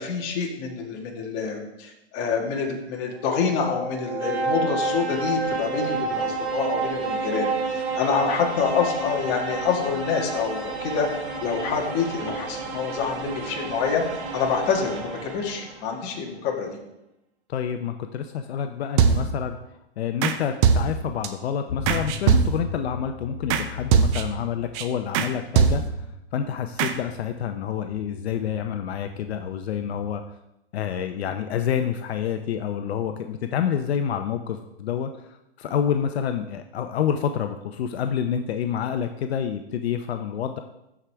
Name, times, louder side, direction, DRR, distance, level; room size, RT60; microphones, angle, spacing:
voice 1, 0.0-11.1 11.4-14.0 14.3-16.7, left 6 dB, 30° left, 0 dB, 1.6 m, -27 dB
sound 1, 3.0-15.9, right 3 dB, 85° right, 2.1 m, -30 dB
voice 2, 17.5-19.6 20.0-26.1 26.3-30.2 30.7-40.6, left 8 dB, 70° left, 7 dB, 0.7 m, -28 dB
sound 2, 19.0-19.5 20.2-20.4 20.6-21.3 21.9-22.8 23.5-23.6 23.9-24.4 24.7-24.8 25.1-25.3 25.5-26.1 26.8-26.9, right 6 dB, 25° right, 0.5 m, -21 dB
sound 3, 21.7-30.2, left 6 dB, 90° left, 1.2 m, -39 dB
13.0 x 4.9 x 3.4 m, 0.89 s
hypercardioid pair, 150°, 32 cm